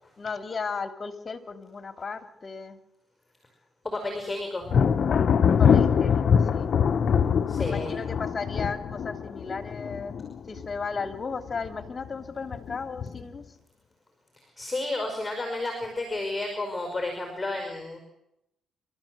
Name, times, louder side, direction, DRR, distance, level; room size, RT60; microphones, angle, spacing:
voice 1, 0.2-2.8 5.6-6.7 7.6-10.2 10.5-13.4, left 5 dB, 35° left, 8 dB, 2.5 m, -35 dB
voice 2, 3.8-4.7 7.5-8.0 14.6-18.0, left 2 dB, 15° left, 4 dB, 5.3 m, -31 dB
Thunder, 4.7-11.2 11.5-12.1 12.5-13.4, left 7 dB, 55° left, 1.1 m, -23 dB
29.0 x 13.5 x 7.7 m, 0.82 s
cardioid pair, 90°, 0 cm